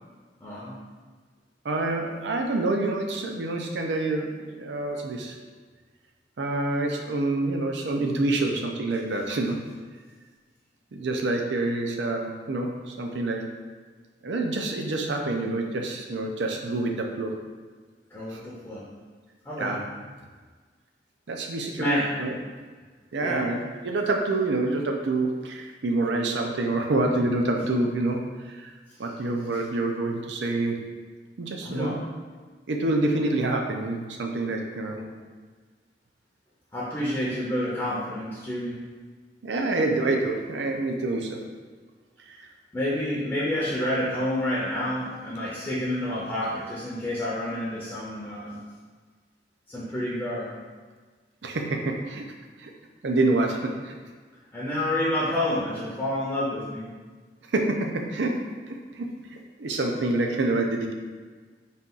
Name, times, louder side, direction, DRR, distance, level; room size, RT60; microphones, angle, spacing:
voice 1, 0.4-0.8 18.1-18.8 19.4-19.8 21.7-22.3 23.2-23.5 31.6-32.0 34.9-35.1 36.7-38.8 42.7-48.6 49.7-50.5 54.5-56.9, left 1 dB, 15° left, -7 dB, 0.6 m, -29 dB
voice 2, 1.6-5.4 6.4-9.7 10.9-13.6 14.2-17.4 18.3-18.4 19.6-19.8 21.3-22.3 23.1-28.7 29.0-30.9 31.4-32.0 32.7-35.0 39.4-41.4 42.2-42.5 51.4-52.3 52.6-52.7 53.0-54.0 57.5-60.9, right 2 dB, 80° right, 2 dB, 0.5 m, -27 dB
4.1 x 2.4 x 3.8 m, 1.4 s
head